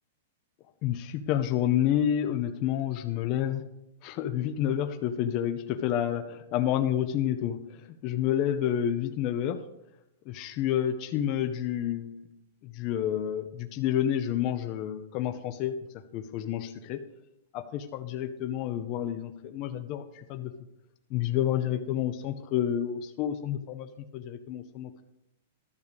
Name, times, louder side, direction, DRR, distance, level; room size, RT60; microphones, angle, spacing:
voice 1, 0.8-3.6 4.0-9.6 10.3-12.2 12.6-15.7 16.1-17.0 17.5-20.0 20.3-20.5 21.1-25.0, left 10 dB, 35° left, 7 dB, 0.6 m, -29 dB
12.0 x 6.6 x 5.2 m, 0.87 s
hypercardioid pair, 150°, 0 cm